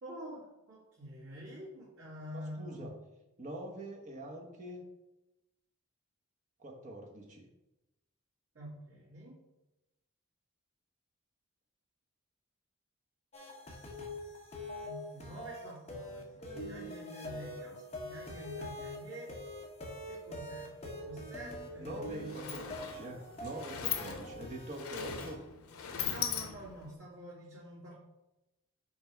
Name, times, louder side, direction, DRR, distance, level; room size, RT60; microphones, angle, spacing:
voice 1, 0.0-3.0 8.5-9.4 14.8-19.3 20.1-22.6 26.0-27.9, equal, 60° right, -10 dB, 2.2 m, -48 dB
voice 2, 2.3-2.9 3.4-4.9 6.6-7.4 17.3-17.4 21.8-25.4, right 1 dB, 35° right, 0 dB, 1.2 m, -45 dB
sound 1, 13.3-25.3, left 1 dB, 30° left, 1.0 m, -44 dB
Sliding door, 21.6-21.7 22.0-26.9, left 8 dB, 80° left, 0.7 m, -40 dB
5.7 x 4.9 x 4.6 m, 0.96 s
head